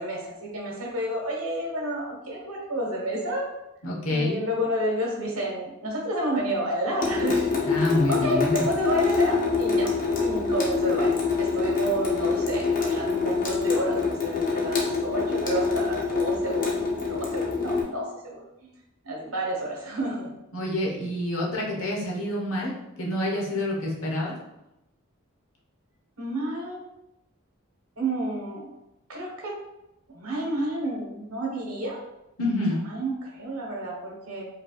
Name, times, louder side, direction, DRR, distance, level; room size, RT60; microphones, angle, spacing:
voice 1, 0.0-3.5 4.1-7.7 8.1-9.9 10.2-18.7 19.0-20.3 26.2-26.8 28.0-28.7 29.1-29.5 30.1-32.0 32.9-34.5, right 1 dB, 85° right, -2 dB, 1.3 m, -30 dB
voice 2, 3.8-4.4 7.7-8.7 20.5-24.4 32.4-32.8, left 1 dB, 80° left, -2 dB, 1.1 m, -27 dB
Water tap faucet / Sink (filling or washing) / Drip, 7.0-17.8, left 4 dB, 40° left, 0.7 m, -25 dB
4.6 x 3.3 x 2.4 m, 0.88 s
head